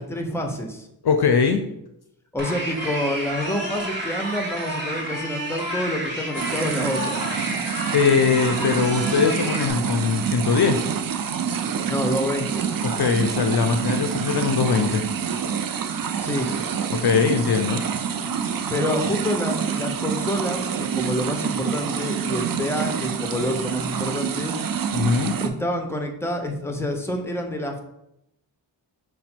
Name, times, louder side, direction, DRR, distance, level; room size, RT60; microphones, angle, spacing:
voice 1, 0.0-0.9 2.3-7.2 11.9-12.7 16.2-16.5 18.7-24.5 25.4-27.8, left 1 dB, 5° left, 4 dB, 0.7 m, -27 dB
voice 2, 1.0-1.6 7.9-10.8 12.8-15.0 16.9-17.8 24.9-25.3, left 5 dB, 55° left, 6 dB, 0.5 m, -21 dB
sound 1, 2.4-9.7, equal, 25° right, 1.5 m, -30 dB
sound 2, 6.3-25.5, right 7 dB, 50° right, 0.5 m, -27 dB
5.0 x 2.2 x 4.4 m, 0.81 s
cardioid pair, 45°, 46 cm